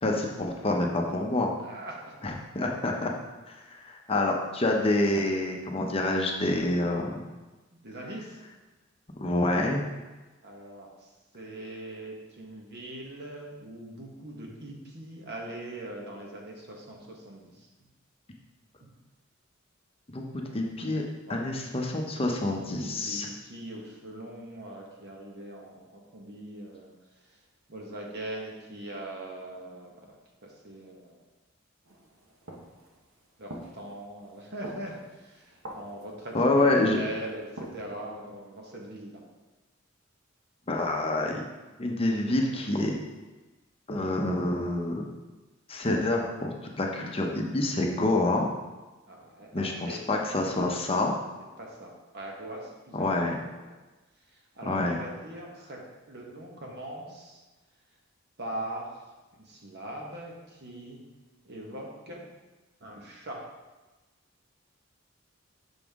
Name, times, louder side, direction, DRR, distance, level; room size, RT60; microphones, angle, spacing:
voice 1, 0.0-1.5 2.2-3.1 3.7-7.2 9.2-9.8 20.1-21.0 21.3-23.3 36.3-37.1 40.7-41.4 41.8-43.0 43.9-45.1 45.7-48.5 49.5-51.1 52.9-53.4 54.7-55.0, left 2 dB, 30° left, 1 dB, 0.7 m, -27 dB
voice 2, 1.6-2.3 7.7-8.4 10.4-17.7 18.8-18.9 21.3-21.4 22.4-26.9 27.3-27.4 27.7-30.2 30.4-31.2 33.4-39.2 49.1-50.0 51.6-53.0 53.4-53.7 54.3-55.8 56.1-57.4 58.4-61.0 61.4-62.2 62.8-63.4, right 1 dB, 55° right, -1 dB, 1.3 m, -41 dB
sound 1, 31.8-38.1, right 1 dB, 80° right, 1.1 m, -47 dB
6.1 x 5.5 x 3.5 m, 1.2 s
head